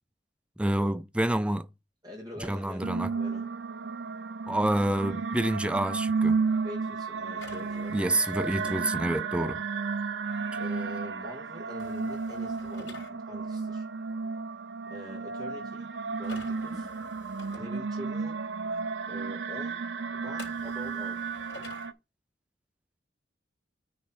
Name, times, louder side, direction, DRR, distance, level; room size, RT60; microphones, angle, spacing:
voice 1, 0.6-1.7 2.4-3.1 4.5-6.4 7.9-9.6, right 1 dB, 5° right, 0.3 m, -28 dB
voice 2, 2.0-3.4 6.6-8.4 10.6-12.9 13.2-13.9 14.9-15.9 16.2-16.9 17.5-18.4 19.1-21.2, left 1 dB, 20° right, 1.8 m, -44 dB
sound 1, 2.8-21.9, right 4 dB, 80° right, 0.7 m, -33 dB
sound 2, 7.4-8.8 11.8-13.1 16.2-17.6 20.4-21.9, left 2 dB, 80° left, 3.5 m, -48 dB
9.4 x 3.2 x 5.9 m
head